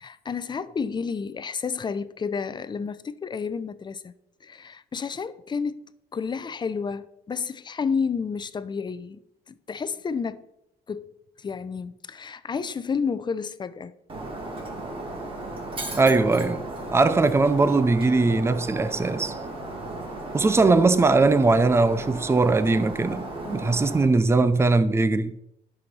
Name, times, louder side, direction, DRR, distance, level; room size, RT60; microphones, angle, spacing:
voice 1, 0.0-4.1 4.4-10.4 10.9-11.1 11.4-13.9 23.4-23.7, left 5 dB, 25° left, 0.7 m, -31 dB
Shatter, 14.1-24.1, right 2 dB, 30° right, 2.4 m, -35 dB
voice 2, 16.0-16.6 16.9-19.4 20.3-25.3, right 3 dB, 15° right, 0.6 m, -20 dB
10.5 x 6.3 x 5.7 m
cardioid pair, 110°, 17 cm